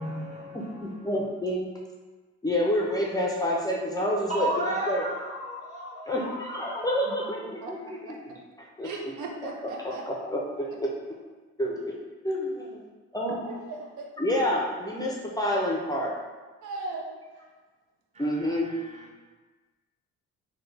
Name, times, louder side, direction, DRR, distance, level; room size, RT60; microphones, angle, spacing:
voice 1, 0.0-1.1 4.3-7.3 18.1-19.1, right 1 dB, 25° right, -3 dB, 0.8 m, -35 dB
voice 2, 0.5-1.7 2.4-4.5 4.9-5.0 6.1-8.2 8.8-8.9 9.8-10.9 11.6-12.0 12.2-12.8 13.1-13.4 14.2-16.1 18.2-18.7, equal, 15° left, -3 dB, 0.4 m, -28 dB
voice 3, 8.8-10.0 13.5-14.1 16.6-17.4, right 3 dB, 80° right, 1 dB, 0.6 m, -38 dB
3.3 x 2.1 x 3.2 m, 1.3 s
cardioid pair, 90°, 30 cm